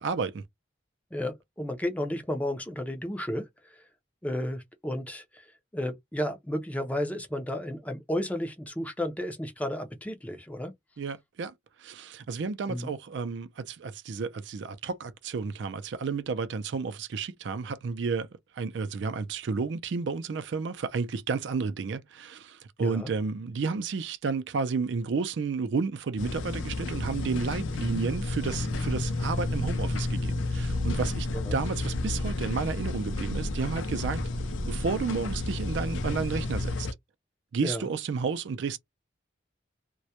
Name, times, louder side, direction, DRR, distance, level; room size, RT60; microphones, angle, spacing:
voice 1, 0.0-0.4 11.0-11.5 11.8-18.3 18.5-34.2 34.7-36.9 37.5-38.8, right 5 dB, 70° right, 0.4 m, -31 dB
voice 2, 1.1-3.8 4.2-10.7 12.7-12.9 22.8-23.1 31.3-31.6 37.6-37.9, left 1 dB, 10° left, 0.4 m, -33 dB
sound 1, 26.2-36.9, left 2 dB, 90° left, 0.5 m, -31 dB
2.2 x 2.1 x 2.7 m
head